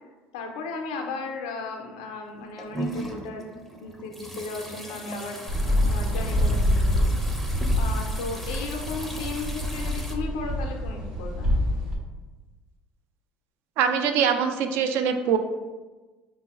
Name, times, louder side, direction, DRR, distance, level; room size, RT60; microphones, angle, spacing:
voice 1, 0.3-3.4 3.8-7.1 7.8-11.5, left 3 dB, 80° left, 2 dB, 0.4 m, -35 dB
sound 1, 2.3-10.2, right 1 dB, 5° left, 0.5 m, -38 dB
sound 2, 5.5-12.0, equal, 85° right, 0.9 m, -26 dB
voice 2, 13.8-15.4, right 7 dB, 65° right, 7 dB, 0.3 m, -23 dB
5.2 x 2.0 x 2.3 m, 1.2 s
hypercardioid pair, 75°, 4 cm